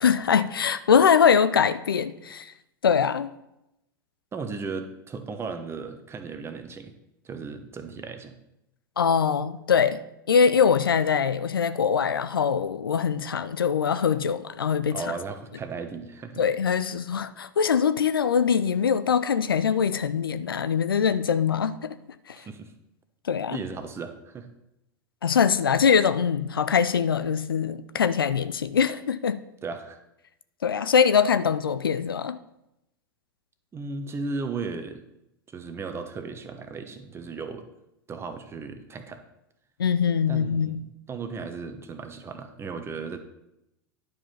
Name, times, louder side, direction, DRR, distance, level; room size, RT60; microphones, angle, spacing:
voice 1, 0.0-2.5 2.8-3.3 9.0-10.0 10.3-15.0 16.4-21.9 22.3-22.4 23.2-23.6 25.2-29.4 30.6-32.4 39.8-40.7, left 7 dB, 80° left, 0.5 m, -23 dB
voice 2, 4.3-6.9 7.2-8.4 14.9-16.4 22.4-22.7 23.5-24.5 29.6-30.0 33.7-35.0 35.5-37.6 38.1-39.2 40.3-43.2, right 4 dB, 20° right, 1.1 m, -36 dB
10.5 x 5.0 x 5.7 m
figure-of-eight pair, 90°, 12 cm